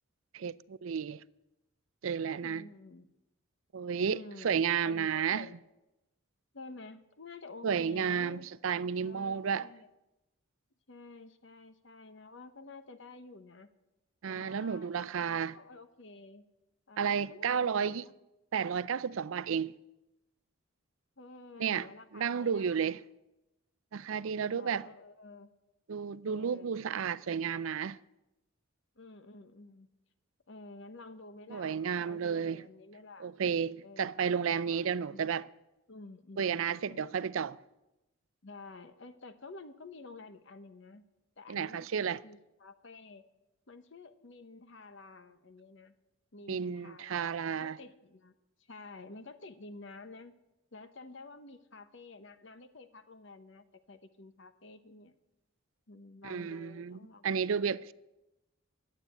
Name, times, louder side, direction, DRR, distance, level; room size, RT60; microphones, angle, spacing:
voice 1, 0.3-1.2 2.0-2.6 3.7-5.5 7.6-9.7 14.2-15.6 17.0-18.0 18.5-19.8 21.6-21.9 22.1-23.0 23.9-24.9 25.9-28.0 31.5-32.6 33.2-35.5 36.4-37.6 41.5-42.2 46.5-47.8 56.2-57.9, right 7 dB, 70° right, 0.4 m, -32 dB
voice 2, 2.4-3.1 4.1-5.6 6.5-8.5 9.0-9.9 10.9-13.7 14.3-16.5 16.9-18.1 21.2-23.0 24.4-25.5 26.2-26.8 28.9-29.9 30.5-31.7 32.0-33.3 33.8-35.3 35.9-37.1 38.4-41.0 41.4-43.3 43.7-45.9 46.3-50.3 50.7-55.2 55.9-57.6, left 3 dB, 55° left, 0.9 m, -51 dB
12.0 x 8.4 x 9.2 m
head